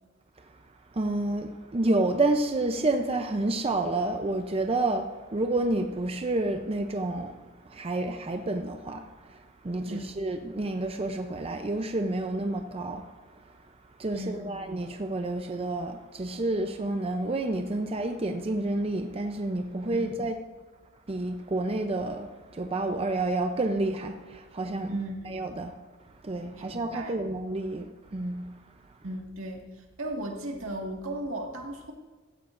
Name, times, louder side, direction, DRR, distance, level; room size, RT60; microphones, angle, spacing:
voice 1, 0.9-20.4 21.1-25.0 25.2-25.7 26.0-28.6, right 2 dB, 30° right, 0.6 m, -30 dB
voice 2, 9.8-10.1 14.1-14.6 19.9-20.1 24.9-25.3 26.5-27.2 29.0-31.9, right 1 dB, 75° right, 1.9 m, -36 dB
15.5 x 14.0 x 2.6 m
head